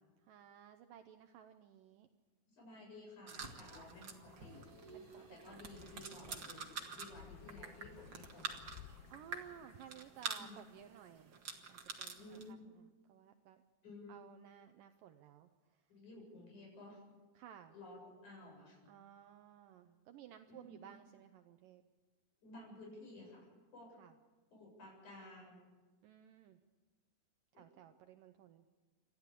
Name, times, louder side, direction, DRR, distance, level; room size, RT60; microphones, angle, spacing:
voice 1, 0.2-2.1 4.9-5.6 6.0-6.7 9.1-11.4 11.7-13.6 14.1-15.8 17.4-17.8 18.9-21.8 23.9-24.1 26.0-26.6 27.5-28.7, right 10 dB, 80° right, 7 dB, 1.9 m, -57 dB
voice 2, 2.5-4.7 5.1-6.7 6.9-8.8 10.3-10.6 12.1-12.7 13.8-14.2 15.9-17.0 17.7-18.8 20.5-20.8 22.4-23.9 24.5-25.6, left 2 dB, 45° left, -1 dB, 9.1 m, -54 dB
sound 1, 3.3-12.5, right 5 dB, 55° right, 1.2 m, -48 dB
sound 2, 3.4-7.3, right 3 dB, 5° right, 7.8 m, -61 dB
sound 3, 5.5-10.4, left 10 dB, 75° left, 2.8 m, -58 dB
28.5 x 13.0 x 8.4 m, 1.3 s
omnidirectional pair, 5.0 m